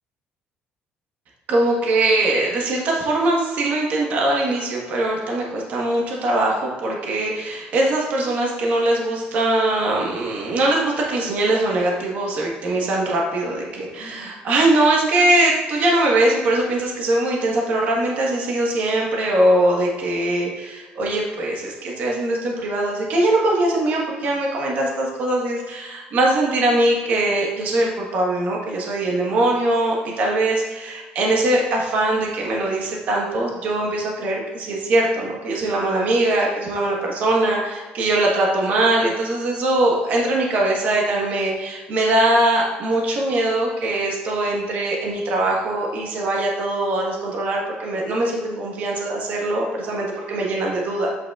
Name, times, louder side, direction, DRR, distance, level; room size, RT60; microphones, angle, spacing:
voice 1, 1.5-51.1, right 2 dB, 50° right, -1 dB, 1.3 m, -21 dB
7.8 x 5.8 x 2.4 m, 1.2 s
cardioid pair, 160°, 4 cm